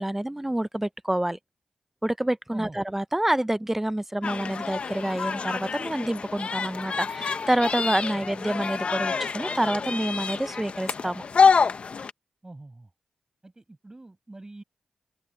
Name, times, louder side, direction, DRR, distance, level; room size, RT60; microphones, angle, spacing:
voice 1, 0.0-1.4 2.0-11.2, right 1 dB, 15° right, 0.8 m, -27 dB
sound 1, 4.2-12.1, left 5 dB, 65° left, 1.1 m, -27 dB
voice 2, 12.4-12.9 13.4-14.6, right 2 dB, 30° right, 5.8 m, -44 dB
open air
supercardioid pair, 40°, 2 cm